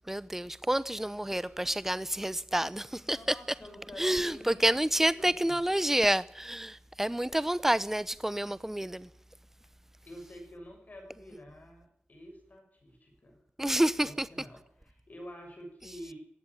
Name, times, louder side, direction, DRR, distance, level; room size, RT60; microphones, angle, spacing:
voice 1, 0.1-3.2 4.0-9.1 13.6-14.3, right 1 dB, 10° right, 0.8 m, -29 dB
voice 2, 3.0-4.6 5.1-5.6 10.0-13.4 14.0-16.1, equal, 45° left, 6.6 m, -48 dB
17.5 x 16.0 x 10.0 m
wide cardioid pair, 110°, 4 cm